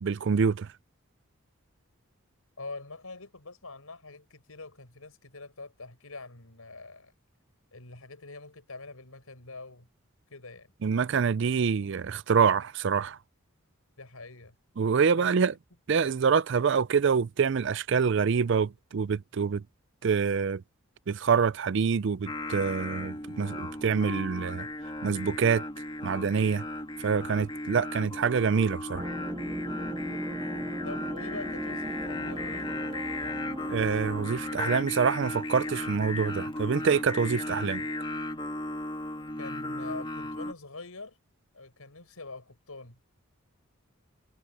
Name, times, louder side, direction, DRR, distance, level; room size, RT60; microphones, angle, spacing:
voice 1, 0.0-0.7 10.8-13.2 14.8-15.5 15.9-19.6 20.0-20.6 21.1-24.7 25.0-25.6 26.0-26.6 27.0-29.1 33.7-37.8, right 6 dB, 55° right, 0.4 m, -26 dB
voice 2, 2.6-7.1 7.7-9.9 10.3-10.7 14.0-14.5 15.2-15.4 30.8-32.6 39.4-41.2 41.5-43.0, left 3 dB, 90° left, 6.2 m, -44 dB
Singing, 22.3-40.5, left 1 dB, 20° left, 1.8 m, -36 dB
sound 1, 28.9-34.7, right 1 dB, 15° right, 1.3 m, -39 dB
head